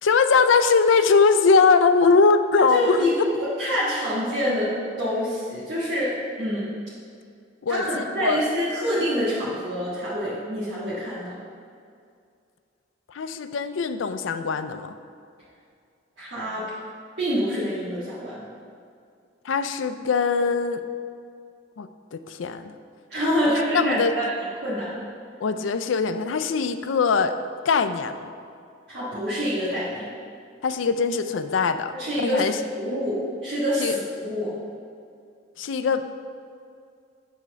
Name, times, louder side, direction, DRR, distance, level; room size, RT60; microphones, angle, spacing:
voice 1, 0.0-3.1 7.6-8.4 13.1-15.0 19.4-20.8 21.8-22.7 23.2-23.3 23.7-24.1 25.4-27.3 27.7-28.3 30.6-31.9 32.2-32.6 33.8-34.0 35.6-36.0, left 4 dB, 90° left, 10 dB, 0.4 m, -21 dB
voice 2, 2.7-4.7 5.0-6.7 7.7-11.3 16.2-16.7 17.2-18.4 23.1-24.3 24.6-25.0 28.9-30.1 32.0-32.5 32.8-34.5, equal, 65° right, -11 dB, 1.8 m, -26 dB
8.3 x 4.4 x 5.7 m, 2.4 s
head